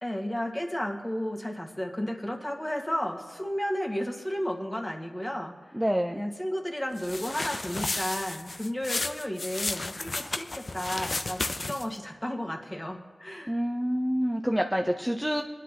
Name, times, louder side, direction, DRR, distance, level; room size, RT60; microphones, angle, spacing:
voice 1, 0.0-5.6 6.1-13.6, equal, 25° left, 2 dB, 1.7 m, -33 dB
voice 2, 5.7-6.2 13.5-15.4, equal, 5° right, 3 dB, 0.6 m, -27 dB
sound 1, 7.0-12.0, left 2 dB, 55° left, 0.6 m, -33 dB
21.0 x 10.0 x 2.9 m, 1.3 s
cardioid pair, 45°, 0 cm